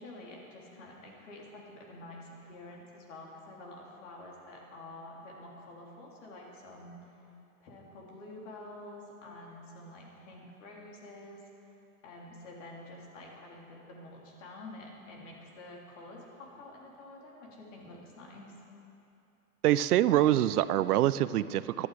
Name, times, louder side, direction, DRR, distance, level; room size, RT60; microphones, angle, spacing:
voice 1, 0.0-7.1 7.6-11.7 12.0-18.5, left 2 dB, 55° left, -2 dB, 3.5 m, -48 dB
voice 2, 19.6-21.9, right 13 dB, 80° right, 16 dB, 0.6 m, -25 dB
16.5 x 11.5 x 5.0 m, 2.7 s
hypercardioid pair, 145°, 44 cm